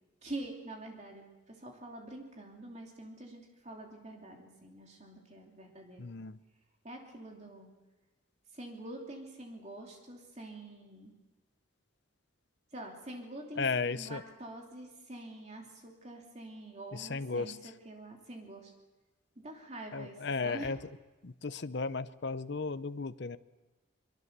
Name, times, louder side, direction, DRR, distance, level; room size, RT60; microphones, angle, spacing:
voice 1, 0.2-6.0 6.8-7.7 8.5-11.1 12.7-18.7 19.4-20.7, right 1 dB, 35° right, 1 dB, 3.0 m, -46 dB
voice 2, 6.0-6.4 13.6-14.2 16.9-17.6 19.9-20.8 21.2-23.4, left 4 dB, 55° left, 13 dB, 0.7 m, -35 dB
23.5 x 22.0 x 6.8 m, 1.2 s
head